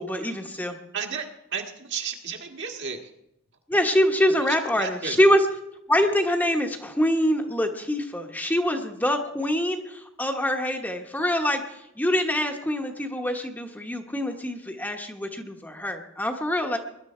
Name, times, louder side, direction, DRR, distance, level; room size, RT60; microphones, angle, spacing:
voice 1, 0.0-0.8 3.7-5.4 5.9-16.8, equal, 10° left, 4 dB, 1.1 m, -25 dB
voice 2, 0.9-3.1 4.5-5.2, right 6 dB, 55° right, 3 dB, 1.7 m, -33 dB
21.5 x 11.0 x 4.3 m, 0.83 s
head